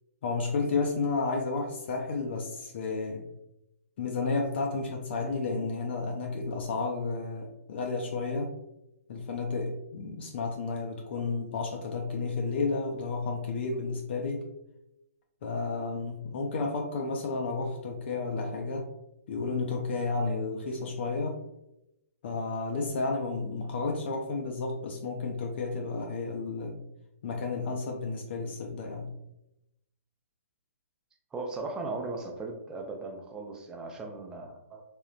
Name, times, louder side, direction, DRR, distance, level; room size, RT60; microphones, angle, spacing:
voice 1, 0.2-3.2 4.0-8.5 9.1-14.5 15.4-18.9 19.3-21.4 22.2-26.8 27.2-29.1, left 3 dB, 45° left, 1 dB, 0.4 m, -32 dB
voice 2, 31.3-34.8, right 3 dB, 10° right, 1 dB, 0.4 m, -37 dB
3.6 x 2.1 x 2.4 m, 0.87 s
figure-of-eight pair, 130°, 8 cm